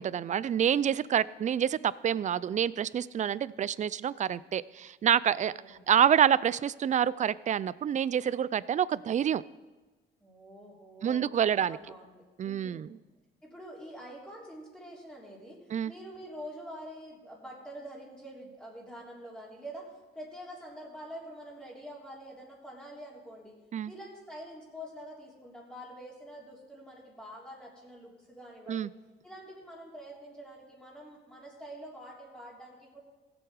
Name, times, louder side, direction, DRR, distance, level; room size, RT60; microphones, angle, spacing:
voice 1, 0.0-9.4 11.0-11.8 12.4-12.9 15.7-15.9 23.7-23.9 28.7-28.9, right 9 dB, 40° right, 20 dB, 0.4 m, -27 dB
voice 2, 5.4-5.9 10.2-12.8 13.4-19.9 20.1-23.6 23.9-28.9 29.2-33.0, equal, 5° left, -5 dB, 3.2 m, -46 dB
16.0 x 7.9 x 4.8 m, 1.2 s
cardioid pair, 90°, 20 cm